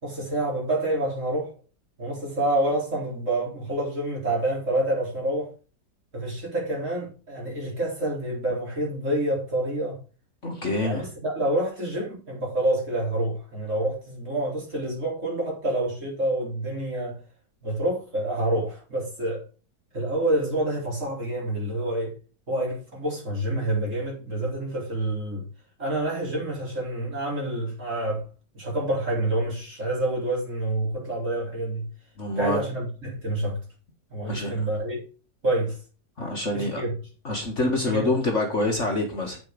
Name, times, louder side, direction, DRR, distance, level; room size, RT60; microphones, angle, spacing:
voice 1, 0.0-1.5 2.0-5.5 6.1-10.0 10.8-17.2 17.6-19.4 19.9-22.1 22.5-25.4 25.8-28.2 28.5-31.9 32.3-33.6 34.1-35.0 35.4-35.8 36.5-36.9 37.8-38.1, right 1 dB, 40° right, 4.5 m, -27 dB
voice 2, 10.4-11.1 32.2-32.6 34.3-34.5 36.2-36.8 37.2-39.4, left 2 dB, 40° left, 1.9 m, -26 dB
8.1 x 7.5 x 5.2 m
omnidirectional pair, 2.0 m